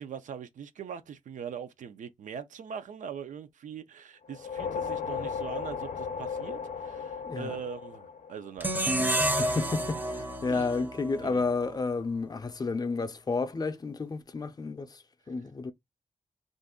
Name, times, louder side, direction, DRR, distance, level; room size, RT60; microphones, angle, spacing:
voice 1, 0.0-9.1 10.5-10.8 11.2-11.4, right 7 dB, 75° right, 0.5 m, -42 dB
sound 1, 4.3-8.8, left 6 dB, 80° left, 0.5 m, -36 dB
voice 2, 7.2-7.6 9.4-14.9 15.3-15.7, left 4 dB, 30° left, 0.5 m, -31 dB
sound 2, 8.6-11.8, right 1 dB, 15° right, 0.5 m, -30 dB
2.5 x 2.3 x 3.6 m
cardioid pair, 90°, 13 cm